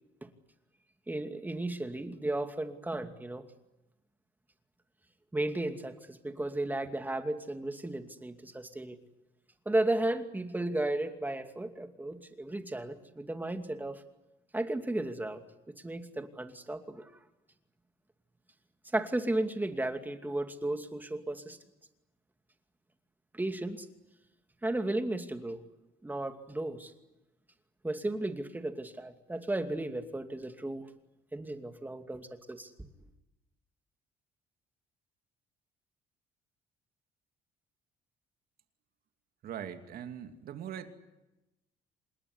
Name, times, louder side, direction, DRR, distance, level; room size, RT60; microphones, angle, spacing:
voice 1, 1.1-3.4 5.3-9.0 9.7-14.0 14.5-15.4 15.8-17.1 18.9-21.6 23.3-23.9 24.6-25.6 26.0-26.9 27.8-30.9 31.3-32.7, right 2 dB, 10° right, 7 dB, 2.5 m, -34 dB
voice 2, 39.4-40.9, right 9 dB, 65° right, 7 dB, 2.7 m, -41 dB
26.5 x 21.0 x 9.8 m, 0.99 s
cardioid pair, 110°, 17 cm